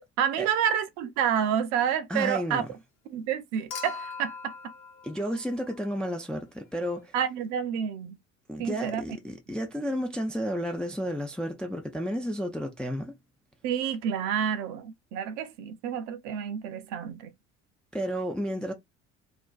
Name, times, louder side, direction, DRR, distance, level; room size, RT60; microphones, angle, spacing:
voice 1, 0.0-2.6 3.1-4.5 7.1-8.2 8.6-9.0 13.6-17.3, right 8 dB, 50° right, 0.5 m, -29 dB
voice 2, 2.1-2.7 5.0-7.1 8.5-13.1 17.9-18.7, equal, 5° left, 0.3 m, -32 dB
Human group actions / Chink clink / Liquid, 3.7-6.1 7.6-7.7, left 5 dB, 45° left, 0.9 m, -41 dB
2.5 x 2.1 x 2.4 m
figure-of-eight pair, 60°, 37 cm